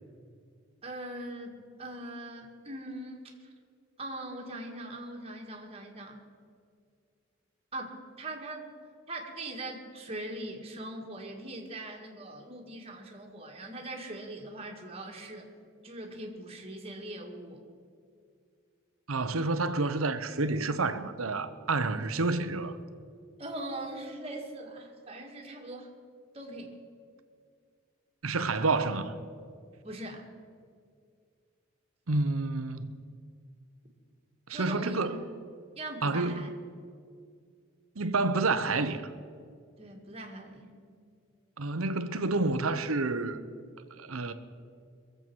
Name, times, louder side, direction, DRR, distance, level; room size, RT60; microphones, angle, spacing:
voice 1, 0.8-3.3 4.0-6.2 7.7-8.7 9.1-15.5 15.8-17.6 23.4-25.9 26.3-26.8 29.8-30.3 34.5-35.1 35.8-36.5 39.8-40.7, right 1 dB, 30° right, 1.9 m, -41 dB
voice 2, 19.1-22.8 28.2-29.2 32.1-32.9 34.5-35.3 36.0-36.5 38.0-39.0 41.6-43.4 44.0-44.3, right 3 dB, 85° right, 0.9 m, -29 dB
22.5 x 7.8 x 6.1 m
head